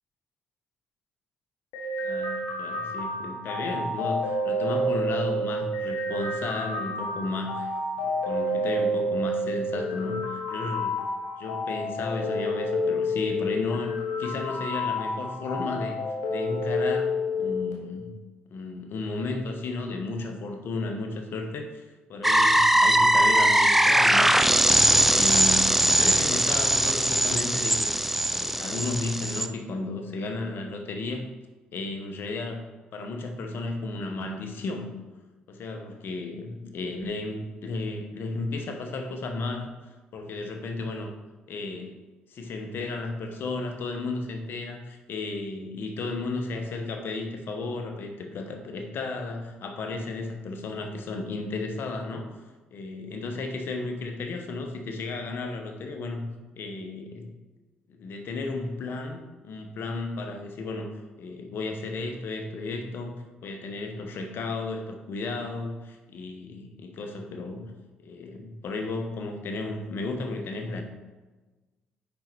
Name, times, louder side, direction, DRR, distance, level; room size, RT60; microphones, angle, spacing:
sound 1, 1.7-17.7, left 1 dB, 85° left, 1.2 m, -29 dB
voice 1, 2.0-7.7 8.0-11.0 11.4-16.0 16.3-18.1 18.5-24.3 24.7-27.9 28.3-31.3 31.7-32.6 32.9-34.9 35.5-39.7 40.1-41.1 41.5-42.0 42.3-52.3 52.7-56.3 56.6-57.3 57.9-67.7 68.0-70.8, left 3 dB, 65° left, 5 dB, 1.0 m, -34 dB
sound 2, 22.2-29.5, right 1 dB, 5° right, 0.5 m, -21 dB
5.4 x 5.3 x 4.5 m, 1.2 s
supercardioid pair, 60°, 4 cm